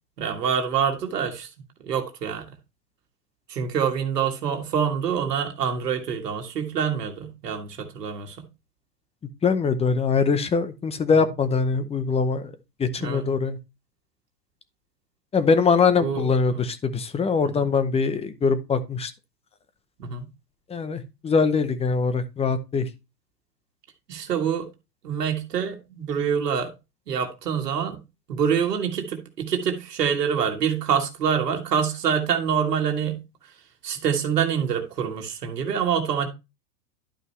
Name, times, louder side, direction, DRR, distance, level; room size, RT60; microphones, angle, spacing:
voice 1, 0.2-1.5 1.8-2.5 3.5-8.4 13.0-13.2 16.0-16.6 17.4-17.7 20.0-20.3 24.1-24.7 25.0-26.7 27.1-28.0 28.3-33.2 33.8-36.3, right 7 dB, 80° right, 1.7 m, -26 dB
voice 2, 9.4-12.5 12.8-13.6 15.3-19.1 20.7-22.8, left 5 dB, 15° left, 0.7 m, -22 dB
11.5 x 5.4 x 3.2 m
hypercardioid pair, 110°, 48 cm